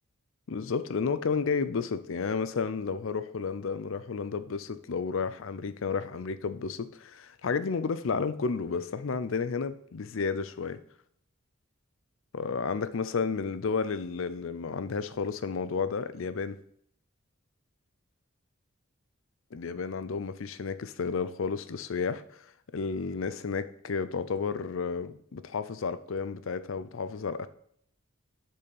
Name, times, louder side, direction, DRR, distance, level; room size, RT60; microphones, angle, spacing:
voice 1, 0.5-10.8 12.3-16.6 19.5-22.4 22.7-27.5, left 5 dB, 70° left, 0.5 m, -32 dB
8.4 x 4.3 x 5.4 m
head